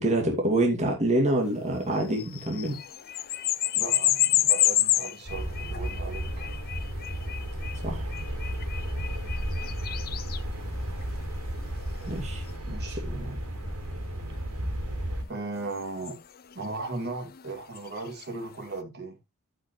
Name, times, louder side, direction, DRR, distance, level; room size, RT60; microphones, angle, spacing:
voice 1, 0.0-2.8 7.8-8.1 12.0-12.4, right 1 dB, 30° right, 2.5 m, -26 dB
sound 1, 2.0-12.6 14.3-14.4 15.6-18.5, left 13 dB, 45° left, 0.6 m, -30 dB
voice 2, 3.7-6.5 9.6-9.8 12.7-13.4 15.3-16.2 16.5-19.2, right 3 dB, 50° right, 2.5 m, -37 dB
sound 2, 5.3-15.2, equal, 80° right, 4.1 m, -33 dB
14.0 x 5.4 x 3.2 m
head